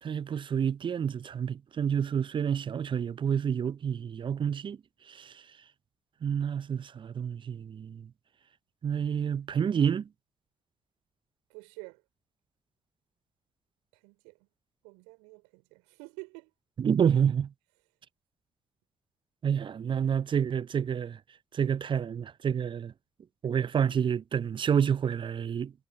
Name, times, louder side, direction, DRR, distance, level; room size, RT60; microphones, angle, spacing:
voice 1, 0.0-4.8 5.1-5.4 6.2-8.1 8.8-10.1 16.8-17.5 19.4-21.2 21.5-22.9 23.4-25.7, right 8 dB, 45° right, 0.8 m, -29 dB
voice 2, 11.5-12.0 13.9-14.4 14.8-16.5, right 34 dB, 75° right, 5.0 m, -48 dB
figure-of-eight pair, 40°, 12 cm